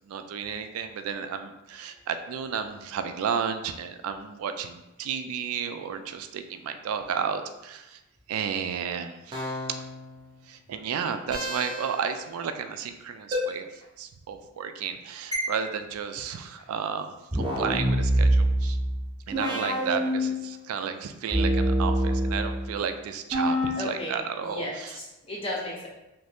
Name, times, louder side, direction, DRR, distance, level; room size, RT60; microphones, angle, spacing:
voice 1, 0.0-8.0 8.3-9.6 10.5-18.8 19.3-25.0, right 7 dB, 90° right, 8 dB, 0.3 m, -32 dB
sound 1, 9.3-10.1 11.3-12.1 13.3-13.4 15.3-15.4 17.3-20.7 21.3-22.7 23.3-23.7, right 1 dB, 20° right, 0.6 m, -26 dB
voice 2, 19.5-19.9 23.8-25.9, left 1 dB, 25° left, -3 dB, 0.7 m, -35 dB
2.8 x 2.6 x 3.4 m, 0.94 s
head